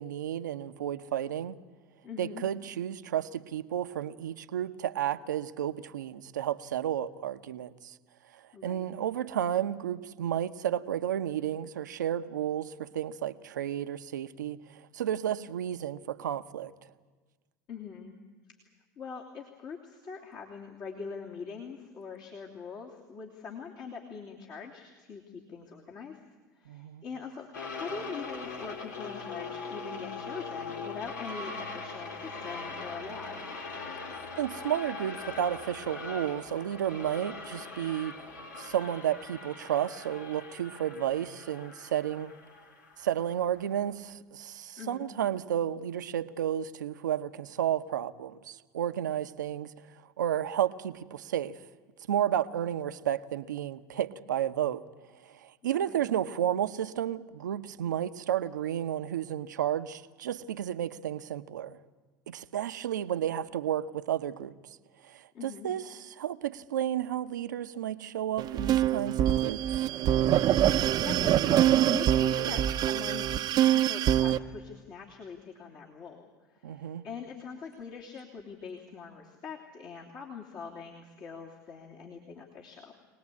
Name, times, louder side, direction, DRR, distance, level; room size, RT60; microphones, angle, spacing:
voice 1, 0.0-1.5 2.2-7.9 8.6-16.7 26.7-27.0 34.4-38.2 38.6-42.3 43.0-49.7 50.2-51.6 52.1-54.8 55.3-61.8 62.3-64.6 65.0-69.9 72.4-72.7 76.6-77.0, right 10 dB, 80° right, 11 dB, 0.9 m, -32 dB
voice 2, 2.0-2.4 8.5-8.9 17.7-18.2 19.0-26.2 26.5-33.6 44.8-45.1 55.9-56.0 65.3-65.7 70.8-73.3 73.7-82.9, left 6 dB, 45° left, -3 dB, 3.0 m, -43 dB
sound 1, 27.5-43.8, left 4 dB, 80° left, 2.8 m, -41 dB
sound 2, 68.4-74.4, right 11 dB, 45° right, 0.7 m, -24 dB
24.0 x 19.0 x 8.5 m, 1.3 s
hypercardioid pair, 80°, 10 cm